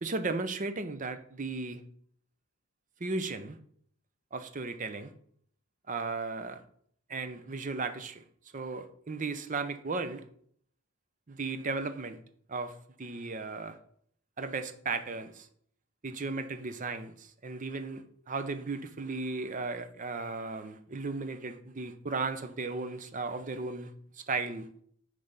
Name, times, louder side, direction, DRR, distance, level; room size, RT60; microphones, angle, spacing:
voice 1, 0.0-1.8 3.0-3.6 4.3-5.1 5.9-6.6 7.1-8.2 8.5-10.2 11.3-12.2 12.5-13.8 14.4-15.5 16.0-24.7, right 3 dB, 35° right, 0.6 m, -35 dB
9.5 x 3.4 x 5.1 m
head